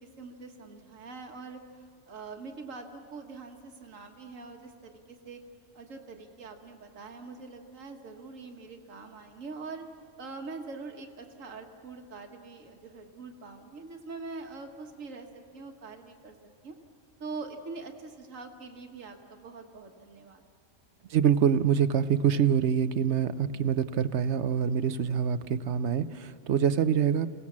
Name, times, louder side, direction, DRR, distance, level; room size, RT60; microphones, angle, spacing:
voice 1, 0.0-5.4 5.7-9.8 10.2-15.3 15.5-16.3 16.6-16.8 17.2-20.4, right 4 dB, 90° right, 3 dB, 1.7 m, -43 dB
voice 2, 21.1-27.3, right 8 dB, 65° right, 13 dB, 1.0 m, -25 dB
28.0 x 18.0 x 7.3 m, 2.3 s
omnidirectional pair, 1.3 m